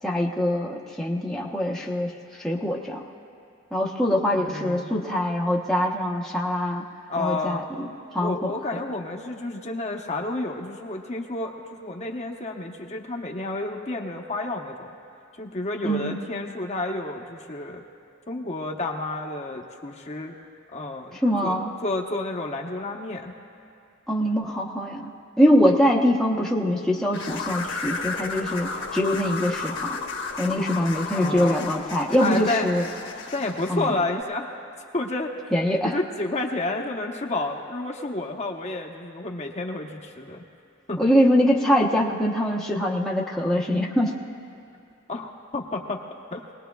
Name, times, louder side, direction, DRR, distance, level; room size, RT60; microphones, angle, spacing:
voice 1, 0.0-2.1 2.4-3.0 3.7-6.8 7.2-7.9 8.1-8.8 15.8-16.2 21.2-21.7 24.1-25.1 25.4-30.0 30.4-32.8 33.7-33.9 35.5-36.0 41.0-44.1, equal, 5° left, -4 dB, 0.9 m, -23 dB
voice 2, 4.4-4.9 7.1-7.7 8.2-14.9 15.4-17.8 18.3-20.3 20.7-23.3 31.1-31.6 32.2-32.7 33.3-34.5 34.9-35.3 35.8-40.4 40.9-41.0 45.1-46.0 46.3-46.4, left 2 dB, 35° left, 0 dB, 0.9 m, -30 dB
sound 1, 27.1-33.8, left 4 dB, 60° left, 1.2 m, -33 dB
24.0 x 19.0 x 2.3 m, 2.5 s
head